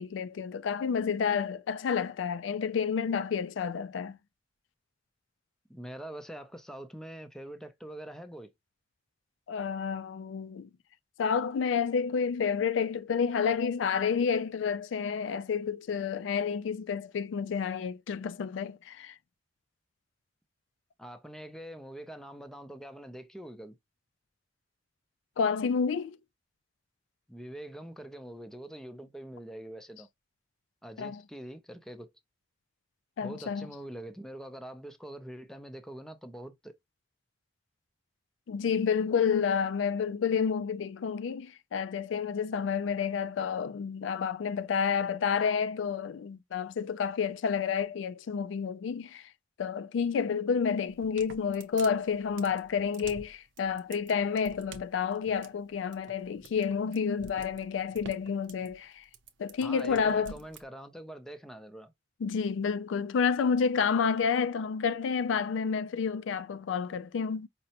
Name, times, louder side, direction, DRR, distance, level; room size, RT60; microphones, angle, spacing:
voice 1, 0.0-4.2 9.5-10.7 11.2-19.2 25.4-26.2 31.0-31.2 33.2-33.7 38.5-49.3 49.6-59.0 59.4-60.3 62.2-67.5, left 6 dB, 85° left, 0.4 m, -30 dB
voice 2, 5.7-8.5 21.0-23.8 27.3-30.1 30.8-32.1 33.2-36.8 59.6-61.9, right 1 dB, 5° left, 0.4 m, -44 dB
sound 1, 50.9-60.6, right 4 dB, 80° right, 0.6 m, -49 dB
5.2 x 2.0 x 2.8 m
head